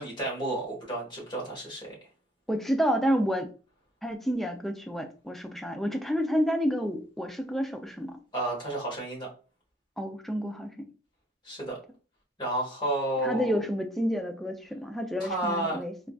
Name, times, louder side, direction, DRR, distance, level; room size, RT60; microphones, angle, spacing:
voice 1, 0.0-1.9 8.3-9.3 11.4-11.8 12.4-13.5 15.2-15.8, right 1 dB, 25° left, -3 dB, 1.3 m, -31 dB
voice 2, 2.5-3.5 4.0-8.2 10.0-10.9 13.2-15.9, equal, ahead, 4 dB, 0.3 m, -29 dB
3.5 x 2.5 x 2.3 m, 0.36 s
head